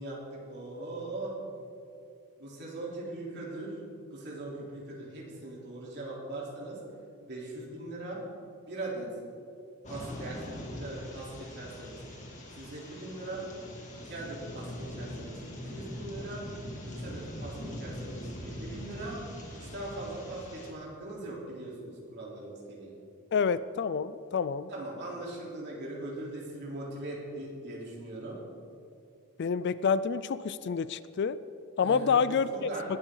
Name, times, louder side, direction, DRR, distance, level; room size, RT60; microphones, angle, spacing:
voice 1, 0.0-1.3 2.4-3.7 4.1-6.8 7.3-8.2 8.7-9.1 9.9-12.0 12.5-13.4 14.0-15.4 15.7-16.4 16.9-19.2 19.6-22.9 24.7-28.4 31.8-32.8, right 2 dB, 50° right, -4 dB, 3.7 m, -40 dB
sound 1, 9.8-20.7, left 1 dB, 35° left, 2.5 m, -42 dB
voice 2, 23.3-24.7 29.4-31.4 31.8-32.7, left 6 dB, 50° left, 16 dB, 0.4 m, -28 dB
20.0 x 12.0 x 3.9 m, 2.5 s
head